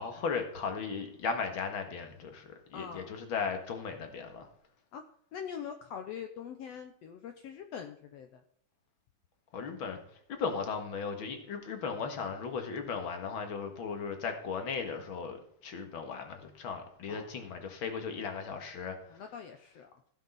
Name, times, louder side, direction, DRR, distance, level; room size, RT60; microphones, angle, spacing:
voice 1, 0.0-4.5 9.5-10.0 10.3-15.4 15.6-19.2, left 5 dB, 45° left, 6 dB, 1.9 m, -36 dB
voice 2, 2.7-3.1 4.9-5.0 5.3-8.4 17.1-17.3 19.1-19.9, left 7 dB, 75° left, 6 dB, 1.5 m, -43 dB
16.0 x 6.7 x 5.5 m, 0.66 s
omnidirectional pair, 3.8 m